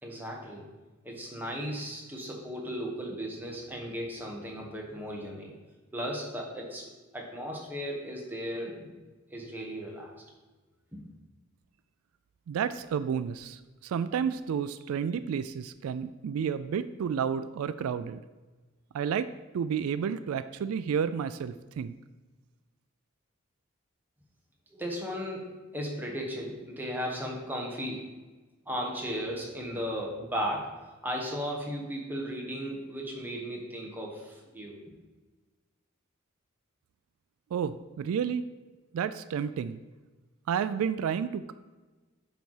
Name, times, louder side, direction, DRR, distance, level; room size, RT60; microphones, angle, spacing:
voice 1, 0.0-0.7 1.0-5.5 5.9-8.9 9.3-10.1 10.9-11.0 24.7-28.1 28.7-30.7 31.0-34.8, equal, 10° right, -1 dB, 1.2 m, -36 dB
voice 2, 12.5-18.2 18.9-19.3 19.5-21.9 37.5-38.4 38.9-39.8 40.5-41.5, right 7 dB, 80° right, 14 dB, 0.3 m, -31 dB
8.0 x 4.1 x 4.8 m, 1.2 s
head